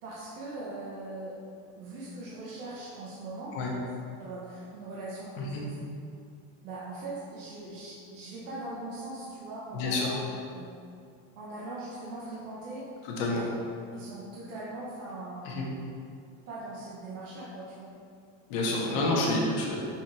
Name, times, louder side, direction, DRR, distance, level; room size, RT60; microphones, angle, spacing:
voice 1, 0.0-1.4 1.7-3.9 4.2-5.8 6.6-10.2 10.5-10.7 11.4-12.9 13.3-13.5 13.9-15.7 16.5-17.9 18.6-19.0, right 2 dB, 90° right, -6 dB, 1.3 m, -40 dB
voice 2, 9.7-10.1 13.0-13.4 15.4-15.7 18.5-19.8, left 2 dB, 50° left, -3 dB, 1.4 m, -28 dB
6.1 x 4.1 x 4.3 m, 2.4 s
supercardioid pair, 175°, 37 cm